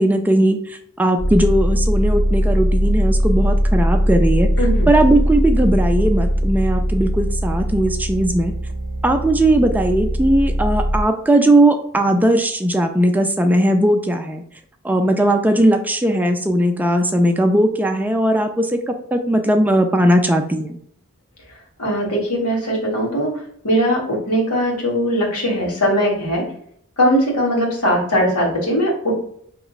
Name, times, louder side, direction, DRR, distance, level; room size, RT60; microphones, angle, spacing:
voice 1, 0.0-4.5 4.9-8.5 9.0-14.4 14.8-20.8, right 1 dB, 10° right, 5 dB, 0.3 m, -18 dB
sound 1, 1.2-11.0, equal, 55° left, 1.4 m, -20 dB
voice 2, 21.8-23.3 23.6-26.4 27.0-29.1, equal, 90° left, -1 dB, 1.6 m, -19 dB
5.0 x 3.0 x 2.4 m, 0.67 s
head